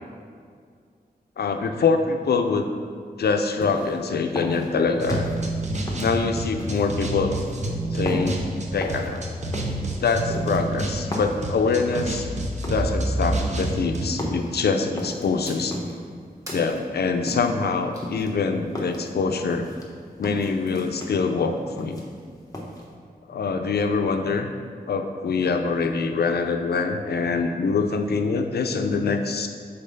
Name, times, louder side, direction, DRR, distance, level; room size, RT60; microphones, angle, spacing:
voice 1, 1.4-2.7 3.2-5.3 6.0-7.3 7.9-8.4 8.7-9.2 10.0-12.3 12.6-15.8 16.5-19.7 20.2-22.0 23.3-24.5 24.9-29.5, left 4 dB, 85° left, 6 dB, 0.5 m, -24 dB
sound 1, 3.6-4.0 4.4-5.4 5.9-6.9 7.3-7.6 8.1-8.4 8.8-9.1 9.5-9.8 10.3-11.4 11.9-12.2 12.6-12.9 13.4-13.8 14.2-14.5 15.0-15.3 15.7-16.1 16.5-16.8 17.3-17.6 18.0-19.1 19.5-19.9 20.2-20.5 21.0-21.3 21.6-22.2 22.5-22.8, left 1 dB, 20° left, 1.0 m, -34 dB
sound 2, 5.0-14.1, right 1 dB, 45° right, 0.7 m, -28 dB
sound 3, 15.4-15.8 16.5-18.1 20.2-20.9, equal, 20° right, 1.4 m, -44 dB
5.5 x 4.0 x 5.2 m, 2.1 s
wide cardioid pair, 110°, 16 cm